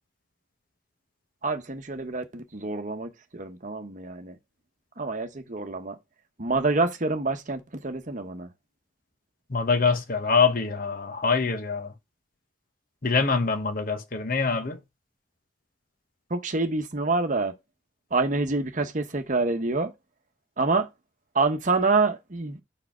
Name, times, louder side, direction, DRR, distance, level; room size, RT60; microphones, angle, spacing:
voice 1, 1.4-4.4 5.0-6.0 6.4-8.5 16.3-17.5 18.1-19.9 20.6-20.9 21.3-22.6, right 3 dB, 45° right, 1.0 m, -27 dB
voice 2, 9.5-11.9 13.0-14.8, left 4 dB, 50° left, 1.0 m, -24 dB
5.3 x 4.8 x 6.0 m
head